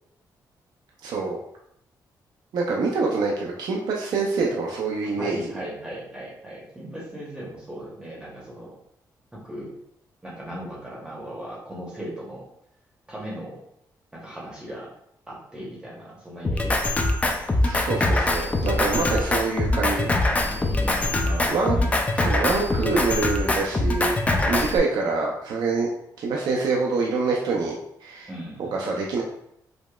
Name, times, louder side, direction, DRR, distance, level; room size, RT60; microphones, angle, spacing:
voice 1, 1.0-1.4 2.5-5.6 17.6-20.1 21.5-21.8 22.1-24.2 24.5-25.9 26.2-27.7 28.0-28.3 28.7-29.2, right 4 dB, 75° right, -2 dB, 0.5 m, -25 dB
voice 2, 5.2-8.8 9.3-9.7 10.2-12.4 13.1-13.6 14.1-14.9 15.3-17.0 20.4-21.9 28.3-28.9, right 1 dB, 10° right, -5 dB, 0.8 m, -37 dB
Drum kit, 16.4-24.8, left 2 dB, 20° left, 0.3 m, -23 dB
4.8 x 2.0 x 2.3 m, 0.74 s
cardioid pair, 130°, 7 cm